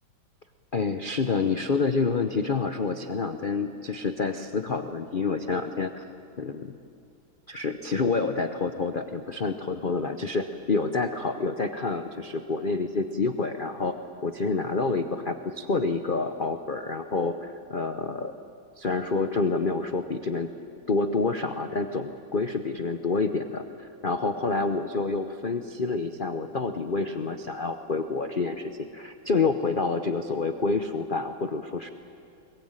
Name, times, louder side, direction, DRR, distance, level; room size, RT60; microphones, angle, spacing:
voice 1, 0.7-6.0 6.4-6.8 7.5-13.9 14.2-18.3 18.8-20.5 20.9-31.9, left 4 dB, 50° left, 8 dB, 0.6 m, -28 dB
23.0 x 22.0 x 8.9 m, 2.6 s
omnidirectional pair, 2.2 m